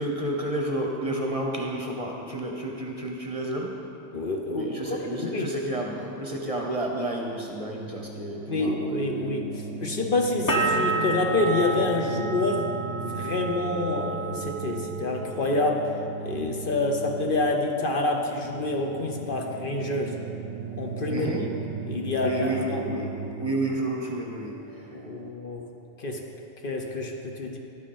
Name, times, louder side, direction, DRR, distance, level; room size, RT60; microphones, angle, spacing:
voice 1, 0.0-3.7 4.6-8.8 21.1-21.4 22.2-25.0, right 1 dB, 35° right, 0 dB, 0.9 m, -31 dB
voice 2, 4.1-5.5 8.5-12.7 13.0-15.9 16.2-20.2 20.8-21.3 21.9-22.8 24.9-25.7 26.0-26.2 26.6-27.6, left 2 dB, 50° left, 2 dB, 1.0 m, -27 dB
sound 1, 7.2-25.3, right 5 dB, 65° right, 0.8 m, -38 dB
sound 2, 10.5-16.1 16.4-17.2, right 2 dB, 20° left, 0.8 m, -31 dB
12.0 x 9.6 x 4.3 m, 2.7 s
omnidirectional pair, 1.2 m